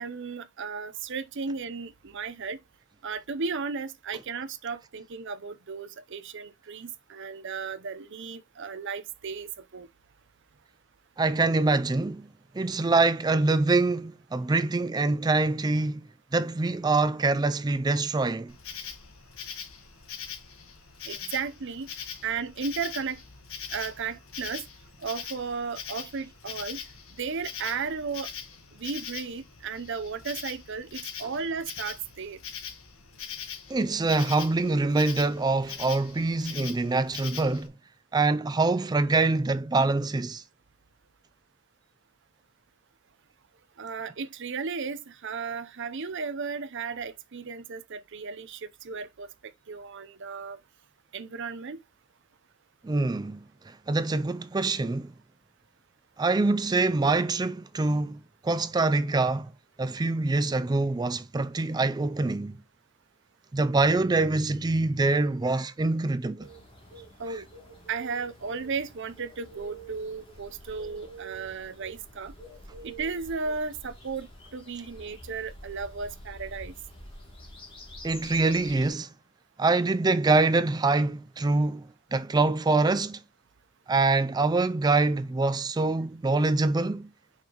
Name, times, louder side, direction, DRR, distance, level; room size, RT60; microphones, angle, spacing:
voice 1, 0.0-2.6 3.0-9.9 21.0-21.9 22.2-23.2 23.7-24.7 25.0-26.8 27.2-28.3 28.7-32.4 43.8-49.3 49.7-50.6 51.1-51.8 67.2-67.5 67.9-72.3 72.8-74.3 74.5-76.7, right 5 dB, 60° right, 0.7 m, -35 dB
voice 2, 11.2-12.3 12.5-18.5 33.7-37.7 38.1-40.4 52.8-55.1 56.2-59.5 59.8-62.6 63.5-66.5 67.3-67.4 78.0-79.1 79.6-83.2 83.9-87.1, right 3 dB, 20° right, 0.4 m, -25 dB
Insect, 18.5-37.7, left 7 dB, 80° left, 1.4 m, -42 dB
sound 1, 66.4-78.9, right 1 dB, 25° left, 2.7 m, -47 dB
6.9 x 5.7 x 3.0 m
head